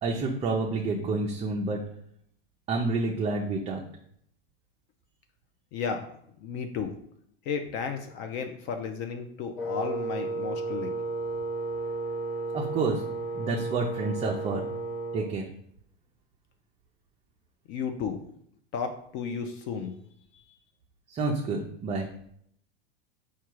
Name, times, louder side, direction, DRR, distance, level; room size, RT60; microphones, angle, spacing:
voice 1, 0.0-1.8 2.7-3.8 12.5-13.0 13.3-14.6 15.1-15.4 21.1-22.1, right 3 dB, 20° right, 0 dB, 0.5 m, -29 dB
voice 2, 5.7-6.1 6.4-6.9 7.5-10.9 17.7-18.3 18.7-20.0 20.3-20.4, left 6 dB, 40° left, 6 dB, 0.5 m, -33 dB
Wind instrument woodwind instrument, 9.6-15.4, right 3 dB, 80° left, 1.0 m, -33 dB
4.6 x 2.3 x 4.5 m, 0.69 s
supercardioid pair, 125°, 29 cm